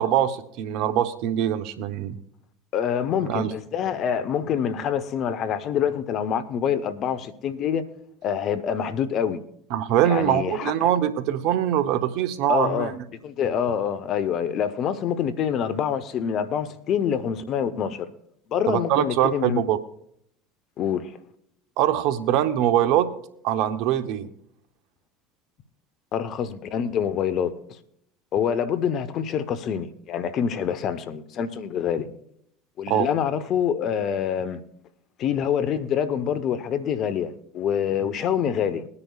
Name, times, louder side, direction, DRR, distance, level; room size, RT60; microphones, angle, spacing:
voice 1, 0.0-2.2 3.2-3.5 9.7-12.9 18.7-19.8 21.8-23.1 23.4-24.3 32.9-33.1, right 11 dB, 65° right, 0.9 m, -23 dB
voice 2, 2.7-7.8 8.2-9.4 10.0-10.9 12.5-12.9 13.2-18.1 18.5-19.6 20.8-21.2 26.1-27.5 28.3-32.1 32.8-34.6 35.2-38.9, left 8 dB, 50° left, 1.0 m, -26 dB
21.5 x 9.8 x 2.4 m
hypercardioid pair, 75°, 0 cm